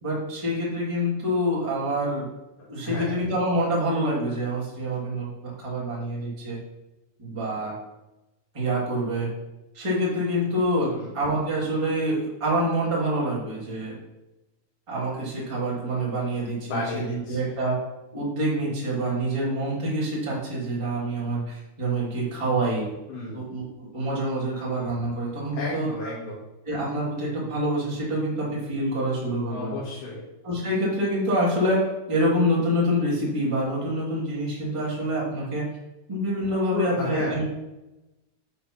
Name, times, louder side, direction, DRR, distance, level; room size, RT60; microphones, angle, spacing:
voice 1, 0.0-2.3 2.7-6.6 7.2-7.7 8.5-9.3 9.7-14.0 14.9-17.8 18.1-22.9 23.3-26.1 26.7-29.7 30.4-35.6 36.1-37.4, right 1 dB, 10° right, -6 dB, 1.9 m, -26 dB
voice 2, 2.6-3.2 10.9-11.1 16.7-17.5 22.4-22.6 23.1-23.4 25.5-26.4 29.5-30.2 36.7-37.4, left 2 dB, 85° left, -7 dB, 3.7 m, -33 dB
8.2 x 4.2 x 6.0 m, 0.99 s
omnidirectional pair, 4.3 m